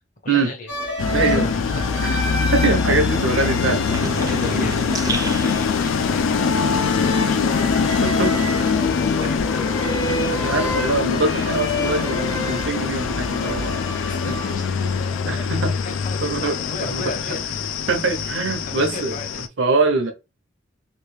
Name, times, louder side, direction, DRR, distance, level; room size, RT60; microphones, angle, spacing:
voice 1, 0.2-0.7 1.3-2.2 3.5-3.6 4.3-6.8 7.1-10.2 14.0-17.4 18.7-19.3, left 3 dB, 45° left, 0.8 m, -36 dB
sound 1, 0.7-14.5, left 1 dB, 70° left, 1.2 m, -30 dB
sound 2, 1.0-19.5, left 5 dB, 85° left, 0.4 m, -23 dB
voice 2, 1.1-1.5 2.0-2.2 2.5-3.8 4.2-4.7 7.4-7.6 8.0-8.4 10.3-13.8 14.3-14.4 15.3-15.7 16.2-17.0 17.3-17.4 17.9-19.2 19.6-20.1, right 3 dB, 70° right, 0.8 m, -23 dB
sound 3, 3.9-9.2 9.5-11.3, right 3 dB, 20° right, 0.3 m, -33 dB
3.1 x 2.6 x 3.2 m
head